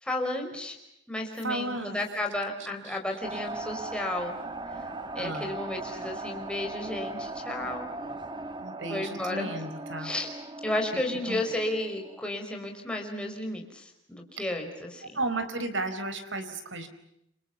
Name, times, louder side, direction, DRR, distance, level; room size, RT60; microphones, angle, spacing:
voice 1, 0.0-0.8 1.1-4.4 5.1-7.9 8.8-9.5 10.0-10.3 10.6-15.0, left 1 dB, 5° left, 1 dB, 5.2 m, -33 dB
voice 2, 1.4-2.1 2.8-3.0 5.2-5.5 8.6-10.1 10.9-11.0 11.3-11.5 14.4-14.5 15.1-16.9, right 2 dB, 65° right, 9 dB, 4.3 m, -34 dB
sound 1, 3.2-12.2, right 2 dB, 25° right, 1.6 m, -39 dB
30.0 x 27.0 x 7.1 m, 0.81 s
head